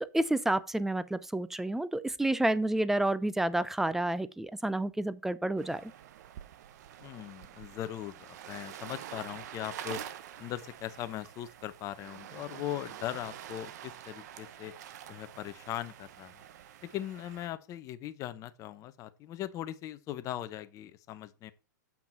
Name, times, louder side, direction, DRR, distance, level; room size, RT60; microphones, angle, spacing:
voice 1, 0.0-5.9, right 1 dB, 5° right, 0.5 m, -30 dB
sound 1, 5.6-17.5, right 10 dB, 60° right, 0.8 m, -47 dB
voice 2, 7.0-10.0 10.4-14.7 15.1-16.4 16.9-21.5, left 12 dB, 30° left, 0.8 m, -39 dB
7.4 x 5.9 x 4.4 m
hypercardioid pair, 115°, 10 cm